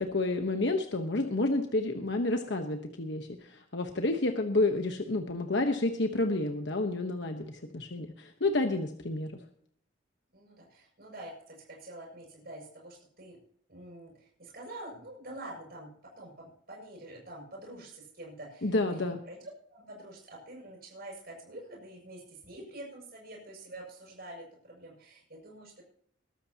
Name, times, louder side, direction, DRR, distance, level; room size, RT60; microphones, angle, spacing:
voice 1, 0.0-9.3 18.6-19.2, left 2 dB, 60° left, 5 dB, 1.2 m, -30 dB
voice 2, 10.3-13.4 13.7-15.9 16.2-19.4 19.7-25.8, right 1 dB, 50° right, -2 dB, 7.0 m, -47 dB
21.5 x 13.0 x 2.9 m, 0.65 s
head